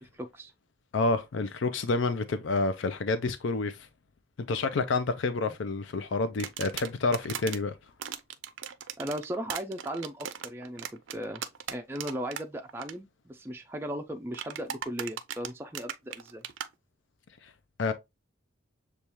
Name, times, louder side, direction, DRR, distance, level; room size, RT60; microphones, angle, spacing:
voice 1, 0.0-0.5 9.0-10.9 11.1-11.4 11.7-16.4, equal, 10° right, 0.3 m, -37 dB
voice 2, 0.9-3.8 4.5-7.7 17.8-17.9, left 3 dB, 80° left, 0.5 m, -28 dB
sound 1, 6.4-7.6 8.0-12.4 12.7-12.9 14.3-16.7, right 9 dB, 90° right, 0.5 m, -38 dB
6.8 x 2.3 x 2.9 m
head